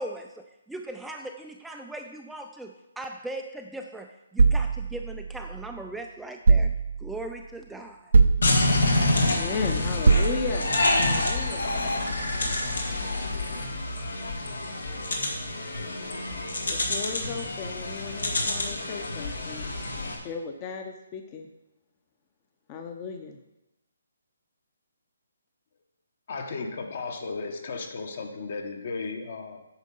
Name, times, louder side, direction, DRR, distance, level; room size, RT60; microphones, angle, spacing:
voice 1, 0.0-6.7 7.0-8.1, right 1 dB, 5° right, 3 dB, 0.3 m, -39 dB
sound 1, 4.4-5.8 6.5-7.3 8.1-9.0 10.1-10.9, right 4 dB, 70° right, 0.6 m, -22 dB
sound 2, 8.4-20.2, left 2 dB, 85° left, 2.0 m, -27 dB
voice 2, 9.2-11.7 16.7-19.7 20.2-21.5 22.7-23.4, left 5 dB, 25° left, 5 dB, 0.7 m, -35 dB
voice 3, 26.3-29.6, left 4 dB, 50° left, 5 dB, 1.3 m, -35 dB
8.9 x 5.3 x 5.4 m, 0.93 s
hypercardioid pair, 160°, 0 cm